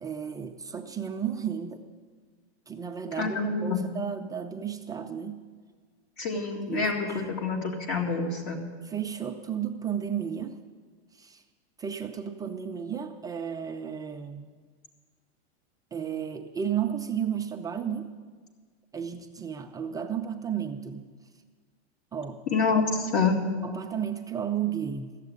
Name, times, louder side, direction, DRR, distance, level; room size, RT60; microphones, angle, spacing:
voice 1, 0.0-1.8 2.7-5.4 6.3-6.4 6.7-7.3 8.8-10.6 11.2-11.4 11.8-14.5 15.9-18.1 18.9-21.1 22.1-22.4 23.6-25.2, right 8 dB, 10° right, 4 dB, 0.3 m, -33 dB
voice 2, 3.2-3.8 6.2-8.6 22.5-23.4, left 4 dB, 45° left, 1 dB, 1.9 m, -27 dB
14.5 x 7.4 x 9.4 m, 1.5 s
hypercardioid pair, 130°, 34 cm